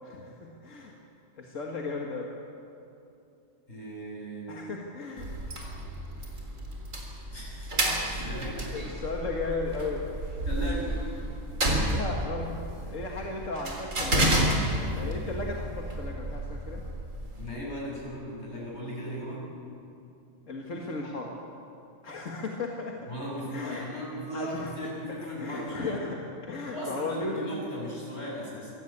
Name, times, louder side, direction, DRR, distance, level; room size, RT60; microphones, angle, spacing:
voice 1, 0.0-0.9 1.4-2.3 4.5-5.3 8.5-10.0 11.9-14.6 14.9-16.8 20.5-21.4 22.0-23.0 23.5-23.8 24.3-24.7 25.2-27.4, left 3 dB, 80° left, 0 dB, 2.2 m, -35 dB
voice 2, 3.7-4.5 7.3-7.8 8.0-8.7 10.4-11.0 17.4-19.4 23.1-26.1 26.6-28.7, equal, 60° left, -5 dB, 7.9 m, -37 dB
sound 1, 5.2-17.6, right 1 dB, 85° right, 4.2 m, -31 dB
25.5 x 17.5 x 8.7 m, 2.7 s
omnidirectional pair, 1.3 m